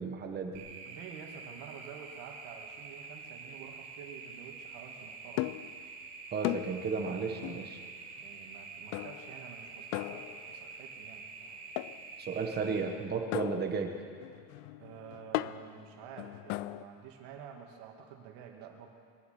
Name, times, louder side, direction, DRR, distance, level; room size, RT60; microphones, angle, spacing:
voice 1, 0.0-0.7 6.3-7.8 12.2-13.9, right 5 dB, 20° right, 3 dB, 1.2 m, -34 dB
sound 1, 0.5-12.8, right 4 dB, 50° right, 3.3 m, -47 dB
voice 2, 0.8-5.5 8.2-11.2 14.8-18.9, right 7 dB, 65° right, 1 dB, 2.3 m, -49 dB
sound 2, 5.4-5.8 6.4-6.9 7.4-7.7 8.9-9.4 9.9-10.6 11.8-12.1 13.3-16.8, left 17 dB, 75° left, 0.6 m, -37 dB
22.5 x 9.7 x 5.9 m, 2.2 s
cardioid pair, 175°, 44 cm